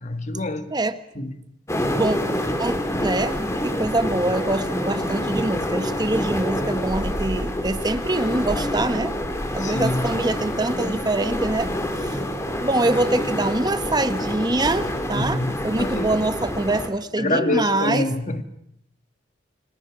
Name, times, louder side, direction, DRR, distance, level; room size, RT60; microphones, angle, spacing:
voice 1, 0.0-0.7 1.2-1.3 9.6-10.1 15.1-16.2 17.2-18.4, left 2 dB, 40° left, 1.7 m, -26 dB
sound 1, 1.7-16.9, equal, 15° left, 2.2 m, -27 dB
voice 2, 3.0-3.4 3.6-9.1 9.5-12.2 12.6-18.1, right 2 dB, 20° right, 1.1 m, -24 dB
29.5 x 25.0 x 4.9 m
head